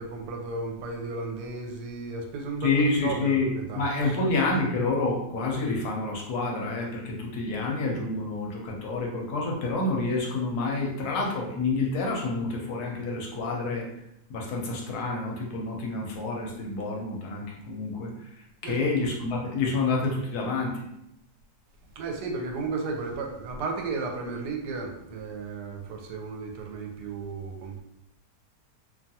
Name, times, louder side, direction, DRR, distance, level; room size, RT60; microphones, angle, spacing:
voice 1, 0.0-4.2 18.6-18.9 22.0-27.8, right 3 dB, 80° right, 2 dB, 1.2 m, -34 dB
voice 2, 2.6-13.9 14.3-18.1 18.6-20.8, left 3 dB, 75° left, 0 dB, 1.1 m, -28 dB
2.8 x 2.3 x 2.7 m, 0.82 s
omnidirectional pair, 1.7 m